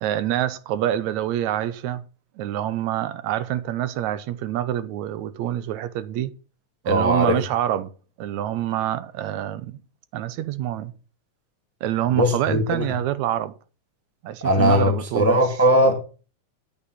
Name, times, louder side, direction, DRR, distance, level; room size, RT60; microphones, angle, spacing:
voice 1, 0.0-2.0 2.4-6.3 6.9-7.9 8.2-9.8 10.1-10.9 11.8-13.5 14.2-15.4, right 12 dB, 80° right, 2.0 m, -26 dB
voice 2, 6.8-7.4 12.1-12.8 14.4-16.0, equal, 5° left, 1.3 m, -19 dB
9.0 x 8.6 x 5.8 m
omnidirectional pair, 3.3 m